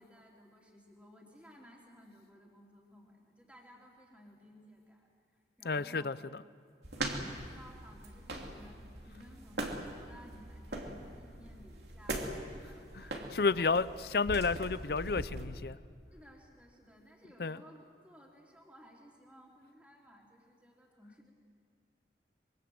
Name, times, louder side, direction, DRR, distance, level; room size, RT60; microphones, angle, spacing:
voice 1, 0.0-6.1 7.0-13.8 16.1-21.3, equal, 5° right, -2 dB, 3.2 m, -57 dB
voice 2, 5.6-6.4 13.3-13.9 14.1-15.8 17.4-17.6, left 4 dB, 55° left, 16 dB, 0.6 m, -31 dB
sound 1, 6.8-15.4, right 1 dB, 70° right, 2.8 m, -41 dB
26.0 x 23.5 x 7.8 m, 2.1 s
head